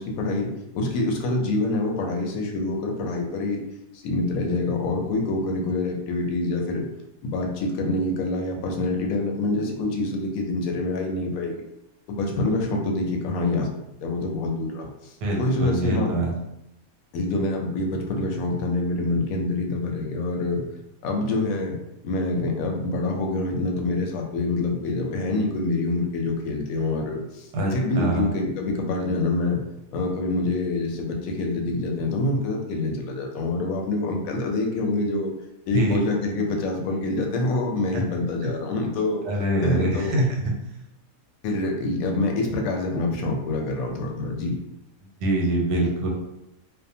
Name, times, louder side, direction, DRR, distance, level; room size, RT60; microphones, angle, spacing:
voice 1, 0.0-3.6 3.9-6.8 7.2-11.7 12.1-13.7 14.0-16.1 17.1-20.6 21.0-21.8 22.0-29.6 29.9-35.3 35.7-39.2 39.6-40.2 41.4-44.6, left 2 dB, 70° left, 1 dB, 0.9 m, -26 dB
voice 2, 15.2-16.3 27.5-28.3 35.7-36.0 37.9-38.0 38.4-38.5 39.3-40.4 45.2-46.1, right 1 dB, 90° right, -1 dB, 1.2 m, -24 dB
2.7 x 2.1 x 2.6 m, 0.86 s
omnidirectional pair, 1.8 m